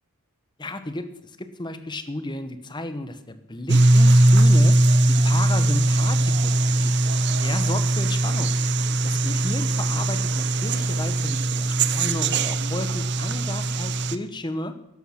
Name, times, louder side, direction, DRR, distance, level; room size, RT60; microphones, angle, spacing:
voice 1, 0.6-1.1 1.4-4.8 5.1-7.1 7.4-8.6 9.0-14.8, left 1 dB, 20° left, 10 dB, 1.0 m, -33 dB
sound 1, 3.7-14.2, right 2 dB, 50° right, 0.7 m, -20 dB
14.0 x 12.0 x 5.8 m, 0.85 s
head